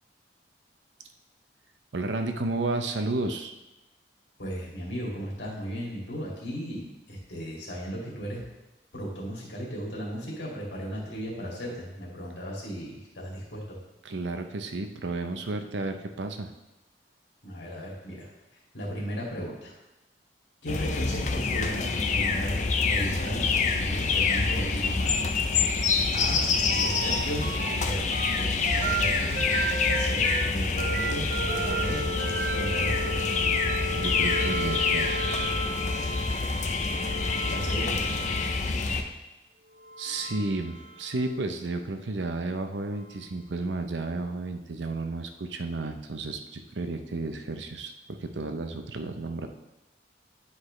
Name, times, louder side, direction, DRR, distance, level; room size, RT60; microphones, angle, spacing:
voice 1, 1.9-3.6 14.0-16.5 33.9-35.5 38.5-38.7 40.0-47.9 48.2-49.5, right 2 dB, 90° right, 6 dB, 0.7 m, -32 dB
voice 2, 4.4-8.4 8.9-13.8 17.4-19.7 20.6-22.6 22.9-25.3 26.1-29.4 29.9-31.3 31.6-32.0 32.5-33.2 37.5-38.0, equal, 90° left, -4 dB, 2.4 m, -36 dB
sound 1, 20.7-39.0, left 4 dB, 40° left, 0.5 m, -27 dB
sound 2, 26.7-27.8 28.1-38.9 39.7-41.3 43.0-43.1, right 2 dB, 45° right, 0.7 m, -33 dB
9.7 x 4.8 x 3.2 m, 1.0 s
head